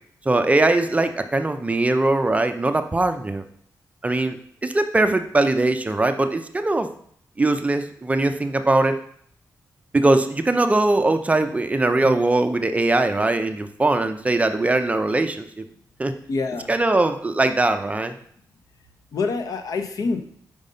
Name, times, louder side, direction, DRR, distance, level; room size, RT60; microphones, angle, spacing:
voice 1, 0.3-3.4 4.0-4.4 4.6-6.9 7.4-9.0 9.9-15.6 16.0-16.1 16.7-18.1, right 2 dB, 20° right, 8 dB, 0.6 m, -21 dB
voice 2, 16.3-16.7 19.1-20.4, left 4 dB, 65° left, 6 dB, 0.8 m, -26 dB
5.3 x 5.0 x 5.3 m, 0.63 s
cardioid pair, 90°, 7 cm